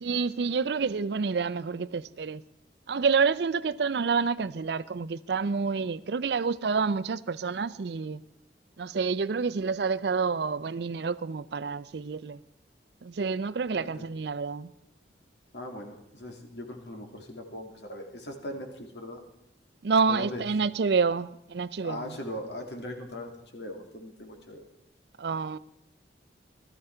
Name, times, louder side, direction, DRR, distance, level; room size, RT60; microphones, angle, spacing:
voice 1, 0.0-2.4 2.9-8.2 8.8-12.4 13.0-14.7 19.8-22.2 25.2-25.6, right 5 dB, 65° right, 0.5 m, -28 dB
voice 2, 13.7-14.1 15.5-19.2 20.1-20.4 21.8-24.6, left 1 dB, 70° left, 2.3 m, -39 dB
16.5 x 13.5 x 4.5 m
head